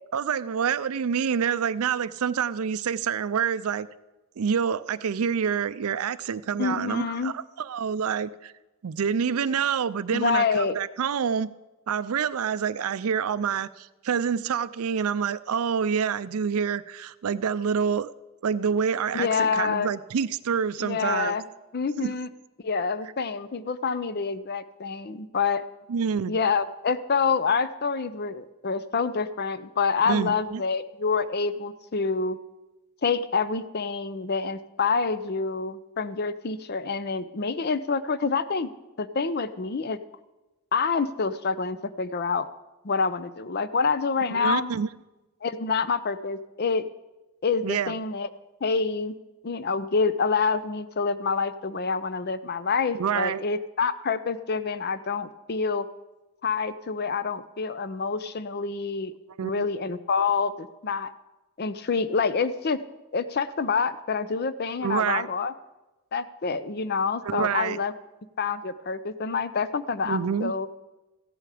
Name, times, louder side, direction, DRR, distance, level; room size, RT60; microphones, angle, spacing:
voice 1, 0.1-3.9 4.4-8.5 8.8-11.5 11.9-18.1 18.4-21.3 22.0-22.1 25.9-26.3 30.1-30.6 44.3-44.9 47.6-47.9 52.9-53.4 59.4-59.6 64.8-65.3 67.2-67.8 70.0-70.5, right 7 dB, 75° right, 16 dB, 0.4 m, -27 dB
voice 2, 6.6-7.3 10.1-10.8 19.1-19.9 20.8-21.4 21.7-22.3 22.6-25.6 26.3-32.4 33.0-38.7 39.0-40.0 40.7-42.5 42.8-44.7 45.4-46.9 47.4-48.3 48.6-49.1 49.4-55.9 56.4-59.1 59.4-61.1 61.6-62.8 63.1-65.5 66.1-67.9 68.4-70.7, left 5 dB, 45° left, 14 dB, 0.5 m, -27 dB
15.0 x 10.0 x 4.9 m, 1.1 s
head